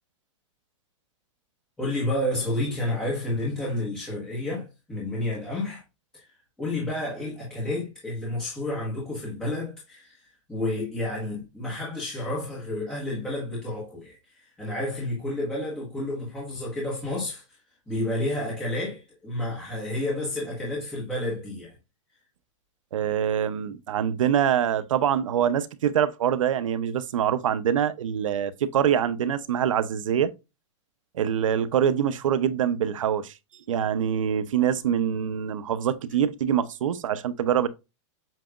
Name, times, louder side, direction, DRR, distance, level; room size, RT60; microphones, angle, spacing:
voice 1, 1.8-5.8 6.1-6.2 6.6-10.2 10.5-17.4 17.9-21.7, left 1 dB, 5° left, 1.4 m, -30 dB
voice 2, 22.9-30.3 31.1-33.3 33.7-37.7, right 9 dB, 90° right, 0.8 m, -24 dB
7.5 x 2.9 x 2.4 m
supercardioid pair, 170°, 16 cm